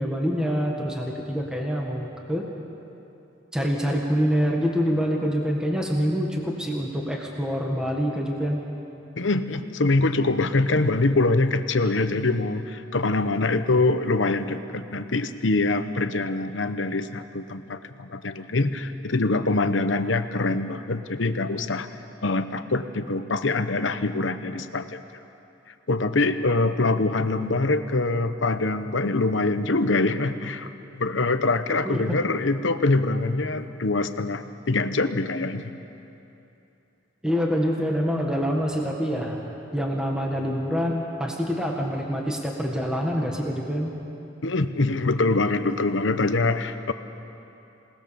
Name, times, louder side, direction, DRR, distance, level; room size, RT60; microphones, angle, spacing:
voice 1, 0.0-2.5 3.5-8.6 31.8-32.2 37.2-39.4 39.7-43.9, equal, 5° right, 0 dB, 1.8 m, -26 dB
voice 2, 9.2-21.9 22.2-25.2 25.7-35.8 44.4-46.9, left 2 dB, 70° left, 10 dB, 1.0 m, -24 dB
27.0 x 19.0 x 7.0 m, 2.9 s
head